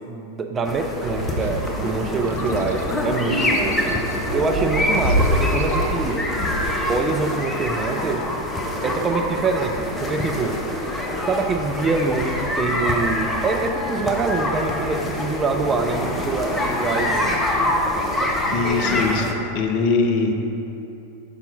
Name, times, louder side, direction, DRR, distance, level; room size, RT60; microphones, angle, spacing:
voice 1, 0.1-4.0 4.3-6.5 6.9-8.3 8.8-10.6 11.3-17.2, right 4 dB, 20° right, 4 dB, 0.4 m, -25 dB
sound 1, 0.7-19.3, left 1 dB, 15° left, 0.8 m, -25 dB
sound 2, 1.0-6.7, equal, 60° right, 0.7 m, -27 dB
voice 2, 18.1-19.3 19.5-20.3, left 4 dB, 45° left, 3 dB, 0.6 m, -22 dB
5.8 x 5.7 x 3.9 m, 2.8 s
figure-of-eight pair, 90°, 0 cm